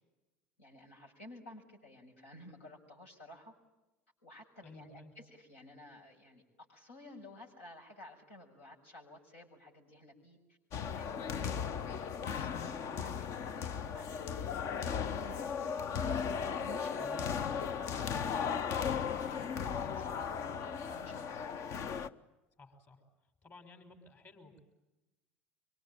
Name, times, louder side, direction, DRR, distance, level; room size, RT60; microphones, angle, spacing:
voice 1, 0.6-3.5 4.2-6.4 6.7-10.6 10.9-14.5 14.9-15.9 16.5-21.5, left 1 dB, 80° left, -2 dB, 6.7 m, -54 dB
voice 2, 4.6-5.1 12.5-13.1 17.0-17.3 22.6-23.0 23.4-24.6, left 2 dB, 35° left, 6 dB, 5.2 m, -54 dB
sound 1, 10.7-22.1, left 7 dB, 50° left, 1.0 m, -36 dB
25.5 x 24.5 x 9.0 m, 1.0 s
figure-of-eight pair, 70°, 7 cm